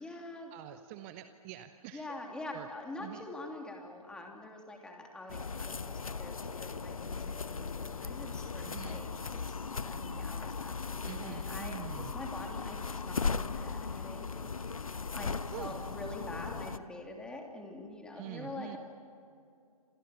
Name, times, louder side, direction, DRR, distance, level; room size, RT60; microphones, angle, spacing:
voice 1, 0.0-0.5 1.9-9.1 9.4-18.8, left 2 dB, 5° left, 2 dB, 2.9 m, -45 dB
voice 2, 0.5-2.1 2.5-2.7 3.0-3.2 8.6-9.0 11.0-12.1 15.5-15.9 18.1-18.8, right 13 dB, 20° right, 9 dB, 0.8 m, -46 dB
sound 1, 5.3-16.8, left 5 dB, 70° left, 1.0 m, -38 dB
28.5 x 27.5 x 7.1 m, 2.5 s
figure-of-eight pair, 135°, 19 cm